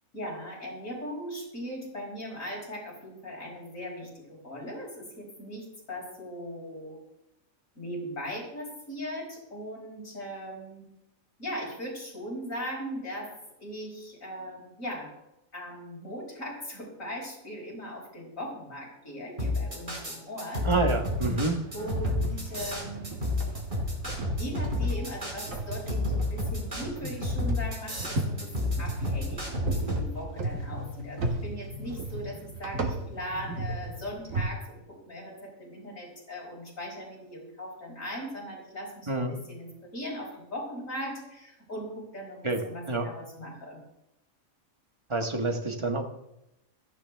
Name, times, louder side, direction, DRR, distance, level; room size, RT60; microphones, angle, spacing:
voice 1, 0.1-7.0 7.8-10.9 11.4-15.1 15.5-20.7 21.7-23.3 24.3-43.8, equal, 70° left, -3 dB, 5.3 m, -39 dB
sound 1, 19.4-30.1, left 2 dB, 35° right, 4.2 m, -30 dB
voice 2, 20.6-21.5 39.1-39.3 42.4-42.6 42.9-43.1 45.1-46.0, right 2 dB, 20° right, 3 dB, 1.4 m, -27 dB
sound 2, 21.2-34.5, right 2 dB, 75° right, 1.9 m, -35 dB
16.0 x 13.5 x 3.5 m, 0.86 s
omnidirectional pair, 1.4 m